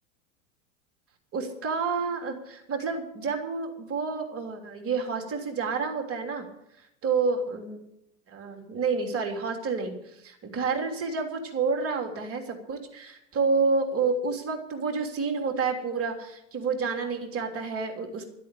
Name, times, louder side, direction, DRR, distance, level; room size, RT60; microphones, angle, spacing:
voice 1, 1.3-6.4 7.0-7.8 8.3-18.3, right 4 dB, 35° right, 3 dB, 3.2 m, -29 dB
13.0 x 8.5 x 9.9 m, 0.81 s
hypercardioid pair, 105°, 39 cm